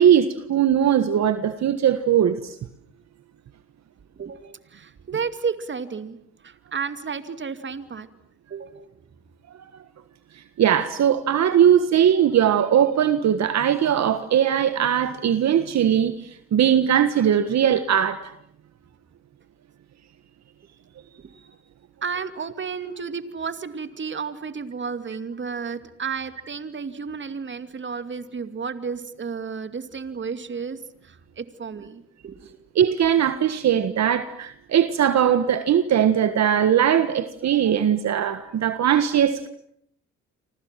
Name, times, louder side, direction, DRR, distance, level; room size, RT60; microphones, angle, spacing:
voice 1, 0.0-2.5 10.6-18.2 32.7-39.5, right 9 dB, 60° right, 11 dB, 1.7 m, -20 dB
voice 2, 4.2-6.2 6.4-8.1 8.5-8.9 21.2-21.3 22.0-32.6, right 5 dB, 40° right, 10 dB, 2.5 m, -32 dB
29.0 x 25.5 x 7.6 m, 0.71 s
cardioid pair, 90°, 30 cm